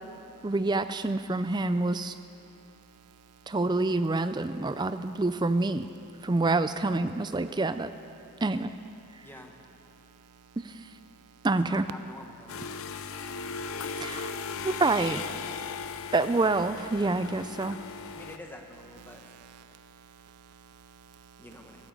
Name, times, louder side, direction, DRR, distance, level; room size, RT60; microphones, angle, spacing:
voice 1, 0.4-2.2 3.5-5.9 6.2-7.9 8.4-8.7 10.6-10.7 11.4-11.9 14.0-14.3 14.6-15.2 16.1-17.8, right 2 dB, 20° right, 0.4 m, -27 dB
voice 2, 9.2-9.5 11.7-12.6 18.1-19.2 21.4-21.9, left 1 dB, 10° left, 1.0 m, -47 dB
sound 1, 12.5-18.4, left 5 dB, 70° left, 0.6 m, -37 dB
voice 3, 19.1-21.4, right 7 dB, 90° right, 0.4 m, -54 dB
14.5 x 14.5 x 5.3 m
head